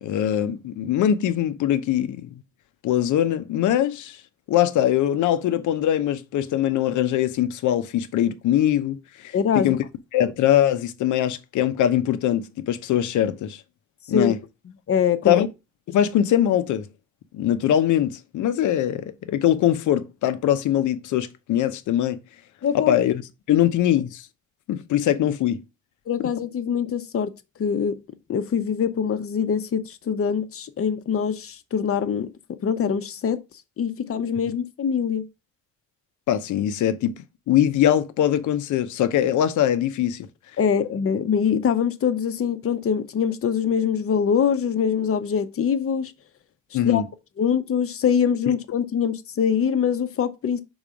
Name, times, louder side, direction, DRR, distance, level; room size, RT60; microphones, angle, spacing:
voice 1, 0.0-2.3 2.8-4.2 4.5-9.8 10.1-13.6 14.1-14.4 15.3-15.5 15.9-16.9 17.3-22.2 22.7-23.2 23.5-24.2 24.7-25.6 26.2-26.3 36.3-40.3 46.7-47.1 48.5-48.6, left 11 dB, 80° left, 0.8 m, -22 dB
voice 2, 9.3-9.8 14.1-14.3 14.9-15.4 22.6-23.0 23.5-23.6 26.1-27.3 27.6-28.0 28.3-32.3 32.6-33.4 33.8-35.2 40.6-46.1 46.8-47.0 47.4-50.6, left 7 dB, 50° left, 0.8 m, -23 dB
5.3 x 4.0 x 4.9 m
cardioid pair, 90°, 30 cm